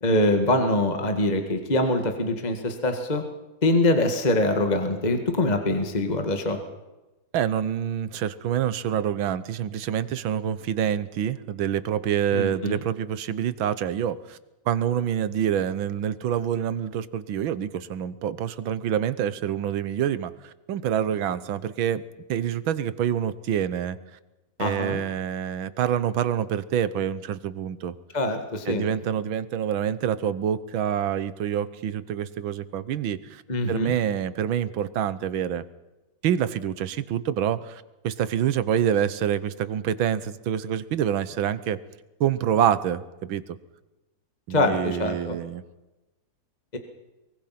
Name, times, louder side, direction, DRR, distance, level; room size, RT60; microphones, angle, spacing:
voice 1, 0.0-3.2 3.6-6.6 12.3-12.8 24.6-25.0 28.1-28.8 33.5-33.9 44.5-45.4 46.7-46.8, left 1 dB, 20° left, 6 dB, 2.0 m, -24 dB
voice 2, 7.3-14.4 14.7-22.0 22.3-24.0 24.6-27.9 28.7-33.4 33.7-35.6 36.2-41.8 42.2-43.6 44.5-45.6, right 9 dB, 90° right, 15 dB, 1.8 m, -26 dB
23.5 x 23.0 x 5.9 m, 1.0 s
omnidirectional pair, 2.1 m